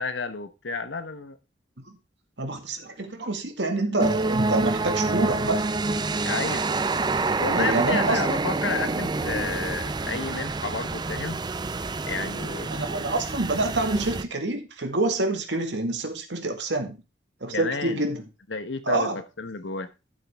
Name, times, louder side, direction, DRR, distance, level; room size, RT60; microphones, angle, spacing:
voice 1, 0.0-1.4 6.2-6.7 7.4-11.4 12.1-12.7 17.5-18.0 18.5-19.9, left 4 dB, 85° left, 10 dB, 1.2 m, -31 dB
voice 2, 2.4-5.6 7.6-8.3 12.7-17.0 17.4-18.2 18.9-19.2, right 2 dB, 75° right, 5 dB, 2.0 m, -27 dB
sound 1, 4.0-14.2, right 3 dB, 25° right, 0.5 m, -27 dB
12.5 x 7.5 x 3.6 m, 0.28 s
head